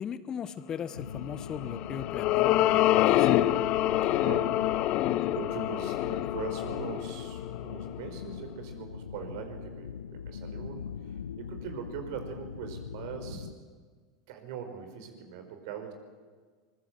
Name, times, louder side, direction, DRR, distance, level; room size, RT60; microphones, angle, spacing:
voice 1, 0.0-3.3, left 8 dB, 30° left, 14 dB, 1.2 m, -38 dB
sound 1, 0.9-13.5, left 7 dB, 75° left, 0.7 m, -41 dB
sound 2, 1.5-8.1, left 14 dB, 45° left, 0.9 m, -26 dB
voice 2, 4.2-4.8 5.3-13.5 14.3-15.9, right 7 dB, 55° right, 6 dB, 4.8 m, -41 dB
24.0 x 22.0 x 7.9 m, 1.5 s
figure-of-eight pair, 85°, 2 cm